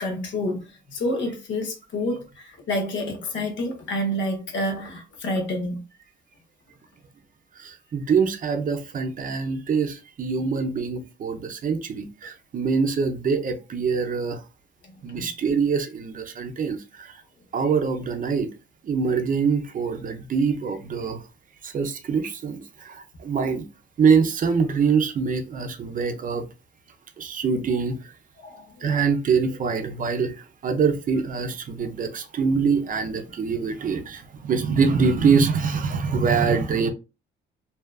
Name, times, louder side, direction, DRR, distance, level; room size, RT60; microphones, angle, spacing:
voice 1, 0.0-5.8 14.9-15.3 28.4-28.7 28.9-29.0, left 1 dB, 70° left, 0.9 m, -29 dB
voice 2, 7.6-14.4 15.0-17.1 17.5-18.5 18.8-21.2 21.6-23.6 24.0-26.4 27.2-28.0 28.8-30.4 30.6-36.9, right 5 dB, 45° right, 0.5 m, -24 dB
2.7 x 2.2 x 2.2 m
cardioid pair, 90°, 20 cm